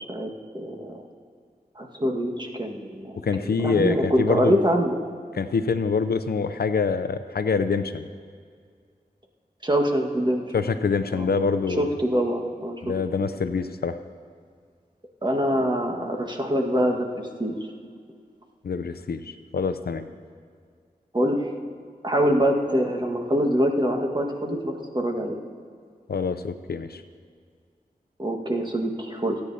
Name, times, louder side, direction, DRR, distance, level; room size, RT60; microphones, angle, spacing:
voice 1, 0.1-1.0 1.7-3.2 3.4-5.1 9.6-10.4 11.1-11.3 11.8-12.8 15.2-17.7 21.1-21.5 22.0-25.4 28.2-29.4, equal, 30° right, 2 dB, 1.5 m, -24 dB
voice 2, 3.2-4.6 5.3-8.1 10.5-11.9 12.8-14.0 18.6-20.1 26.1-27.0, left 5 dB, 80° left, 10 dB, 0.5 m, -25 dB
27.0 x 9.6 x 2.8 m, 2.1 s
wide cardioid pair, 50°, 16 cm